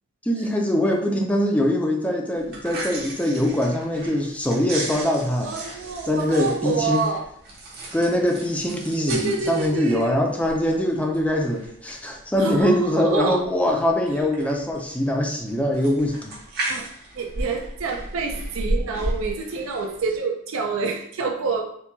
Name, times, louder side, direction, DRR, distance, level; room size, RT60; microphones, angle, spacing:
voice 1, 0.2-5.5 6.0-7.0 7.9-16.3, left 1 dB, 5° left, 1 dB, 0.4 m, -23 dB
sound 1, 2.4-20.2, right 1 dB, 50° right, 1.0 m, -35 dB
voice 2, 5.4-7.3 9.1-10.1 12.4-13.4 16.7-16.9 17.1-21.6, right 4 dB, 70° right, 2 dB, 0.4 m, -27 dB
4.3 x 2.2 x 2.7 m, 0.68 s
head